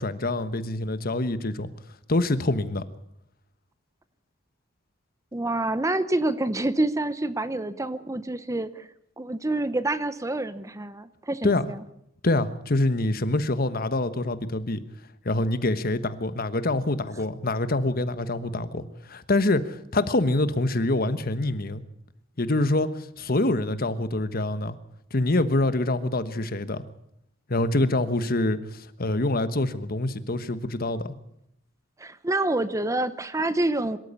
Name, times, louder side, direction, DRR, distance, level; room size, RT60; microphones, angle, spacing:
voice 1, 0.0-1.7 2.1-2.8 11.4-11.6 12.2-14.8 15.2-21.8 22.4-24.8 25.1-26.8 27.5-31.1, left 2 dB, 50° left, 12 dB, 1.3 m, -25 dB
voice 2, 5.3-8.9 9.2-11.8 32.0-34.0, right 2 dB, 15° right, 14 dB, 0.8 m, -27 dB
24.0 x 13.5 x 8.5 m, 0.76 s
head